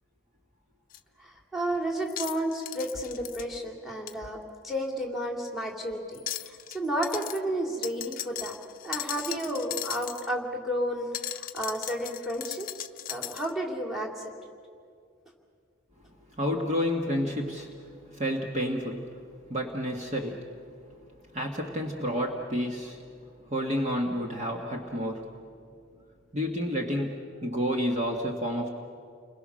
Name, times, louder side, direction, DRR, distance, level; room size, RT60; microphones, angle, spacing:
sound 1, 0.9-1.0 2.1-3.4 4.1-4.2 6.1-6.8 7.0-7.4 7.8-10.3 11.1-13.5, left 12 dB, 45° left, 0.7 m, -37 dB
voice 1, 1.2-6.2 6.4-8.6 8.8-14.3, right 1 dB, ahead, 1 dB, 2.8 m, -32 dB
voice 2, 16.3-19.2 19.5-20.5 21.3-23.0 23.4-25.4 26.3-28.7, equal, 35° right, 1 dB, 1.7 m, -30 dB
30.0 x 22.0 x 6.4 m, 2.3 s
head